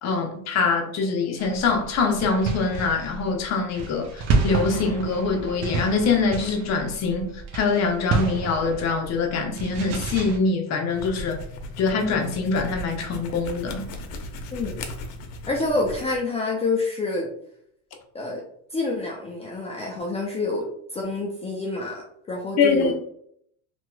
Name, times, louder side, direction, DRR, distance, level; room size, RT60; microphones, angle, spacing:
voice 1, 0.0-11.4 11.8-13.9 22.6-22.9, left 4 dB, 40° left, 0.8 m, -24 dB
sound 1, 1.4-10.4, right 4 dB, 40° right, 0.7 m, -30 dB
sound 2, 10.8-16.2, left 1 dB, 75° left, 0.7 m, -37 dB
voice 2, 15.5-17.3 18.1-18.4 18.7-20.7 20.9-22.9, left 2 dB, 15° left, 0.4 m, -27 dB
3.0 x 2.9 x 2.2 m
supercardioid pair, 110°, 41 cm